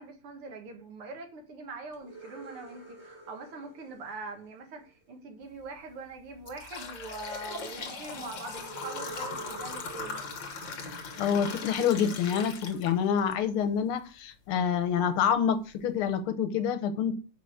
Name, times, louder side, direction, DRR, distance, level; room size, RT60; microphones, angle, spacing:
voice 1, 0.0-10.3, right 3 dB, 85° right, 3 dB, 2.6 m, -43 dB
sound 1, 1.9-4.9 8.5-12.3, right 2 dB, 5° right, 2.3 m, -47 dB
sound 2, 5.5-5.7 6.2-13.3 13.8-13.9 14.7-14.8 15.3-15.4 15.9-16.1, left 4 dB, 60° left, 2.0 m, -39 dB
voice 2, 11.2-17.2, left 8 dB, 80° left, 10 dB, 1.8 m, -27 dB
5.7 x 5.5 x 6.4 m, 0.35 s
omnidirectional pair, 2.4 m